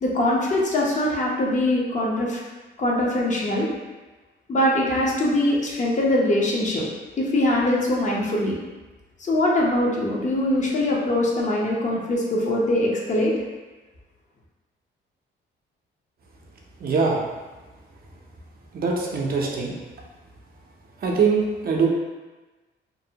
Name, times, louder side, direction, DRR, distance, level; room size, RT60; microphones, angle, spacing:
voice 1, 0.0-2.4 2.8-3.7 4.5-6.9 7.2-8.6 9.2-13.3, left 1 dB, 40° left, -3 dB, 0.6 m, -22 dB
voice 2, 16.8-17.2 18.7-19.7 21.0-21.9, right 5 dB, 50° right, -1 dB, 0.5 m, -22 dB
2.6 x 2.1 x 2.7 m, 1.2 s
cardioid pair, 90°, 20 cm